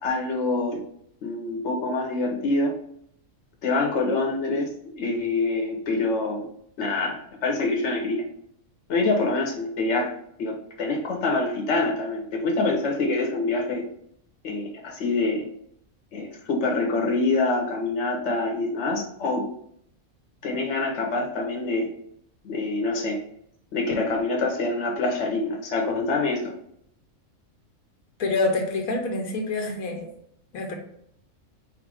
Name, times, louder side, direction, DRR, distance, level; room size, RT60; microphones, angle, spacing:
voice 1, 0.0-0.8 1.2-2.7 3.6-6.5 6.8-8.2 8.9-10.1 10.4-13.8 14.4-15.5 16.1-19.4 20.4-21.9 22.4-23.2 23.7-26.5, left 3 dB, 60° left, 1 dB, 1.2 m, -25 dB
voice 2, 28.2-30.1 30.5-30.8, left 2 dB, 85° left, 2 dB, 1.3 m, -26 dB
4.3 x 2.5 x 4.7 m, 0.69 s
omnidirectional pair, 1.4 m